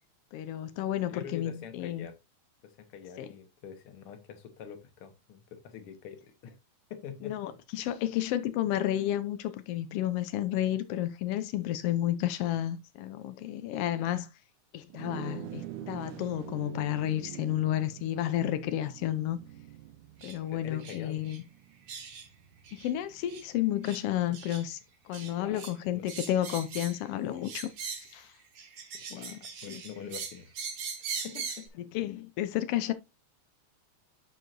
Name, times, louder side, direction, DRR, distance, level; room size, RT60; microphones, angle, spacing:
voice 1, 0.3-2.1 3.2-3.3 7.2-14.3 14.7-19.4 20.2-21.4 22.7-24.8 25.1-28.3 29.1-29.4 29.7-29.8 31.9-32.9, left 12 dB, 85° left, 1.3 m, -31 dB
voice 2, 1.1-2.2 2.6-6.6 6.9-7.6 20.5-21.2 24.3-24.4 25.2-25.6 25.9-26.0 28.9-30.5 30.8-31.8, left 8 dB, 55° left, 1.8 m, -45 dB
sound 1, 14.9-24.5, right 12 dB, 85° right, 2.2 m, -46 dB
sound 2, 20.2-20.4 20.8-21.0 21.2-21.4 21.9-22.3 22.6-22.9 23.3-23.4 23.8-24.0 24.3-24.6 25.1-25.7 26.1-27.0 27.4-28.2 28.6-31.7, right 5 dB, 65° right, 2.7 m, -40 dB
12.5 x 4.7 x 2.6 m
omnidirectional pair, 3.4 m